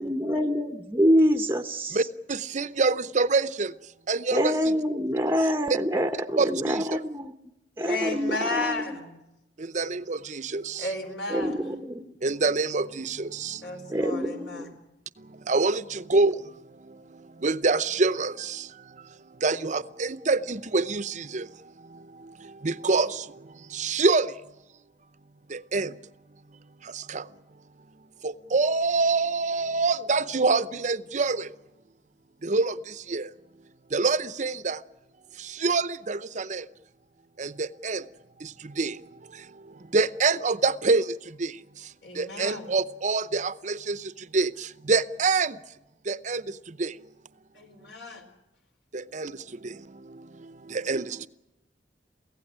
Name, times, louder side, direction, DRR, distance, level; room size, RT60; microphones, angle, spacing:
voice 1, 0.0-2.1 4.3-7.3 7.8-9.0 11.3-12.2 13.9-14.7, equal, 15° right, 0.8 m, -26 dB
voice 2, 2.3-3.7 4.1-4.5 6.4-7.0 9.6-10.9 12.2-13.9 15.2-24.4 25.5-26.0 26.8-27.3 28.2-31.5 32.4-33.3 33.9-34.8 35.3-36.7 37.4-38.1 38.4-45.6 46.0-47.0 48.9-51.3, right 3 dB, 40° right, 0.7 m, -27 dB
voice 3, 7.8-9.1 10.8-11.6 13.6-14.7 42.0-42.7 47.5-48.2, left 2 dB, 70° left, 4.4 m, -33 dB
24.0 x 16.5 x 10.0 m
head